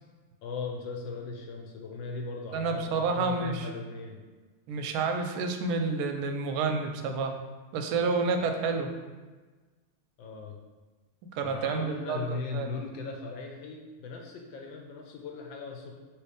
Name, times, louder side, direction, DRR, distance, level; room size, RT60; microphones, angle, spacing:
voice 1, 0.4-4.2 8.4-8.5 10.2-10.6 11.4-15.9, left 4 dB, 75° left, 1 dB, 1.2 m, -38 dB
voice 2, 2.5-3.7 4.7-7.4 7.7-8.9 11.3-12.3 12.5-12.7, right 4 dB, 90° right, 5 dB, 1.4 m, -29 dB
3.4 x 3.0 x 4.8 m, 1.3 s
omnidirectional pair, 2.2 m